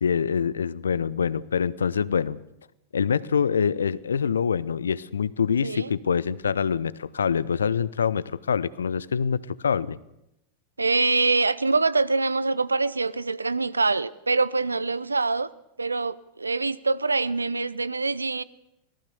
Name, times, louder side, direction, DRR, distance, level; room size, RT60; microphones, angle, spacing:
voice 1, 0.0-2.4 2.9-10.0, left 7 dB, 70° left, 20 dB, 0.8 m, -25 dB
voice 2, 10.8-15.5 15.8-18.4, right 3 dB, 80° right, 20 dB, 0.7 m, -24 dB
25.0 x 18.5 x 6.9 m, 0.84 s
figure-of-eight pair, 90°, 0 cm